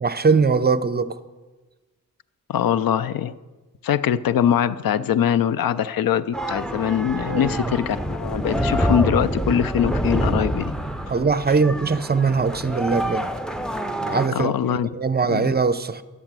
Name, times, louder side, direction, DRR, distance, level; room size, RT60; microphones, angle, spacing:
voice 1, 0.0-1.2 7.3-7.7 11.1-13.3 14.0-16.0, right 4 dB, 30° right, 0.6 m, -21 dB
voice 2, 2.5-3.3 3.8-10.7 14.3-14.9 15.3-15.5, left 9 dB, 90° left, 0.5 m, -22 dB
sound 1, 6.3-14.3, equal, ahead, 0.7 m, -26 dB
11.0 x 8.0 x 7.5 m
wide cardioid pair, 80°, 34 cm